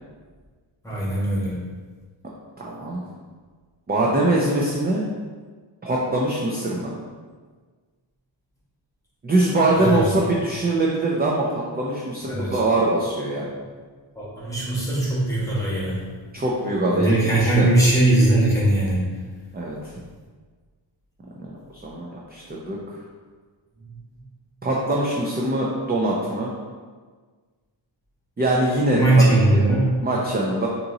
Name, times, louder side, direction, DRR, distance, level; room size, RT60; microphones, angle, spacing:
voice 1, 0.8-1.5 9.8-10.1 12.3-12.6 14.1-16.0 16.9-19.0 23.9-24.0 28.9-29.9, right 2 dB, 5° left, -7 dB, 1.2 m, -20 dB
voice 2, 2.6-3.0 3.9-5.0 5.8-6.9 9.2-13.5 16.3-17.7 19.5-19.9 21.4-21.5 21.8-23.0 24.6-26.5 28.4-29.6 30.0-30.7, right 1 dB, 20° right, -3 dB, 0.4 m, -23 dB
3.9 x 2.9 x 3.7 m, 1.5 s
wide cardioid pair, 140°, 46 cm